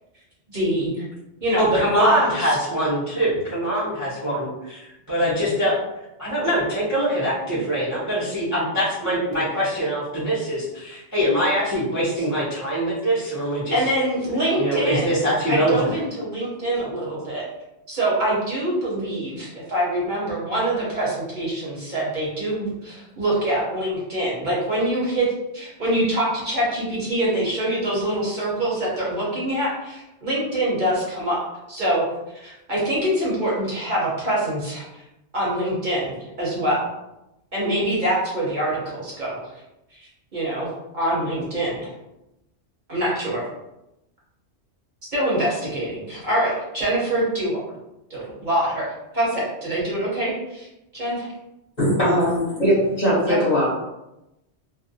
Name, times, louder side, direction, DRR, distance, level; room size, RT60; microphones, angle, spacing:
voice 1, 0.5-1.0 1.4-2.6 13.7-17.4 17.9-25.3 25.5-31.4 31.7-32.0 32.4-35.0 35.3-36.1 36.4-36.9 37.5-39.4 40.3-40.7 40.9-41.9 42.9-43.4 45.1-47.6 48.1-50.7 50.9-51.3 53.3-53.4, right 1 dB, 45° right, -6 dB, 0.8 m, -24 dB
voice 2, 1.5-4.8 5.1-5.8 6.2-13.8 14.6-15.9, equal, 20° right, -10 dB, 0.5 m, -23 dB
voice 3, 51.8-53.7, equal, 40° left, -8 dB, 0.9 m, -20 dB
2.5 x 2.0 x 2.6 m, 0.92 s
omnidirectional pair, 1.2 m